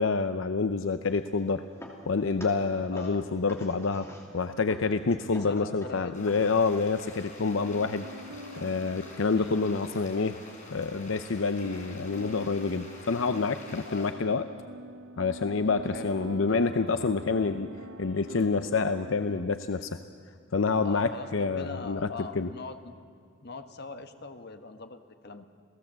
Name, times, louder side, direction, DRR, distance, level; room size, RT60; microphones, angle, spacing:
voice 1, 0.0-1.6 2.1-4.1 4.3-8.1 8.6-10.4 10.7-14.4 15.2-17.7 18.0-20.0 20.5-22.5, left 4 dB, 80° left, 10 dB, 0.7 m, -27 dB
sound 1, 1.0-6.8, left 1 dB, 15° left, 2.7 m, -48 dB
voice 2, 2.9-3.3 5.2-6.3 9.3-9.8 13.8-14.1 15.8-16.2 20.8-22.9 23.4-25.5, left 3 dB, 55° left, 8 dB, 1.3 m, -42 dB
sound 2, 5.3-19.4, right 1 dB, 90° right, 0.8 m, -46 dB
Stream, 6.1-14.1, left 2 dB, 40° left, 4.4 m, -49 dB
28.0 x 17.5 x 7.6 m, 2.2 s
head